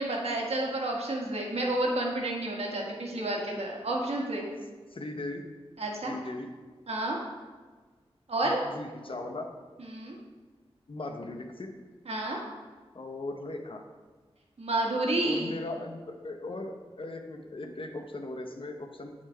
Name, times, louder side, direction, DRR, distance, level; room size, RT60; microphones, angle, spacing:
voice 1, 0.0-4.5 5.8-6.1 6.9-7.2 8.3-8.6 9.8-10.2 12.0-12.4 14.6-15.5, right 1 dB, 80° right, -1 dB, 1.4 m, -30 dB
voice 2, 4.9-5.4 6.0-6.5 8.4-9.5 10.9-11.7 12.9-13.8 15.2-19.1, left 2 dB, 60° left, 4 dB, 0.8 m, -38 dB
8.9 x 4.4 x 4.5 m, 1.4 s
wide cardioid pair, 75°, 10 cm